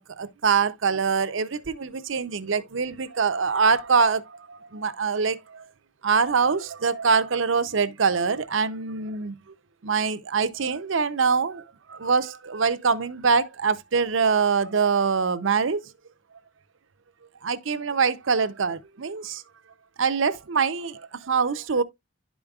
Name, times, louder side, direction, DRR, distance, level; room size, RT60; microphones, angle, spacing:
voice 1, 0.0-5.7 6.0-9.4 9.8-15.8 17.4-19.4 20.0-21.8, right 5 dB, 75° right, 0.7 m, -24 dB
11.5 x 5.0 x 2.4 m
head